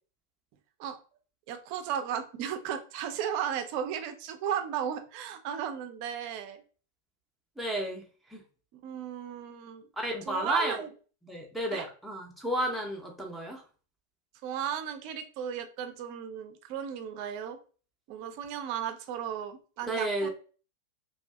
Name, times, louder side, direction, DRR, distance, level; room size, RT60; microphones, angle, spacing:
voice 1, 1.5-6.6 8.8-9.9 10.3-10.9 11.7-11.9 14.4-17.6 18.1-20.3, right 9 dB, 45° right, 7 dB, 0.4 m, -35 dB
voice 2, 7.6-8.0 8.3-8.4 10.0-10.8 11.2-13.6 19.9-20.3, right 1 dB, ahead, 1 dB, 0.6 m, -32 dB
2.5 x 2.3 x 2.2 m, 0.38 s
figure-of-eight pair, 90°, 0 cm